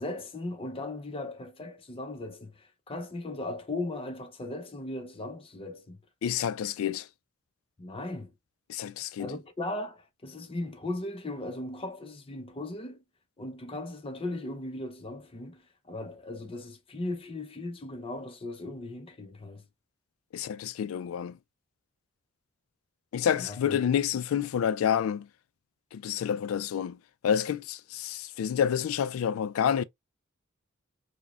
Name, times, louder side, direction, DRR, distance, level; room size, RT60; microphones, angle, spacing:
voice 1, 0.0-6.0 7.8-8.3 9.2-13.0 13.4-19.7 23.4-23.8, left 2 dB, 25° left, 0.6 m, -37 dB
voice 2, 6.2-7.1 8.7-9.3 20.3-21.4 23.1-25.3 25.9-27.0 27.2-29.8, left 8 dB, 80° left, 0.3 m, -28 dB
4.8 x 2.1 x 2.3 m
head